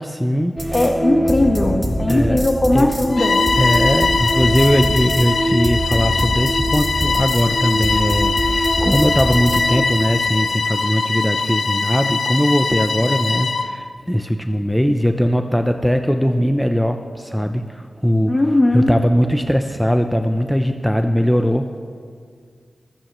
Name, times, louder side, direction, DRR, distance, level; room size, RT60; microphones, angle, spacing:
voice 1, 0.0-0.9 2.1-2.4 2.7-2.9 3.6-21.8, equal, ahead, 6 dB, 0.6 m, -20 dB
sound 1, 0.6-9.8, equal, 20° right, 2.1 m, -23 dB
voice 2, 0.7-3.4 18.3-18.9, left 1 dB, 40° left, 3 dB, 1.4 m, -18 dB
Bowed string instrument, 3.1-13.7, left 4 dB, 80° left, 0.6 m, -21 dB
26.5 x 8.9 x 3.1 m, 2.1 s
cardioid pair, 55°, 0 cm